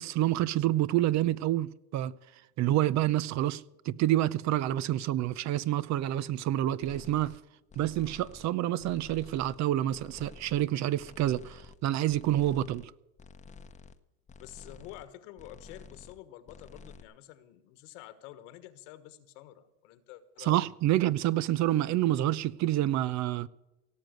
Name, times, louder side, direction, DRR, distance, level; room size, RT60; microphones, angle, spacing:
voice 1, 0.0-2.1 2.6-7.3 7.8-12.9 20.4-23.5, right 13 dB, 50° right, 0.6 m, -28 dB
sound 1, 6.8-7.4 7.7-8.5 8.8-9.6 9.9-10.7 11.0-11.8 12.1-12.9 13.2-13.9 14.3-15.1 15.4-16.2 16.5-17.0, left 5 dB, 20° left, 0.9 m, -51 dB
voice 2, 14.4-20.6, left 13 dB, 80° left, 1.5 m, -49 dB
17.5 x 7.7 x 7.9 m
supercardioid pair, 110°, 36 cm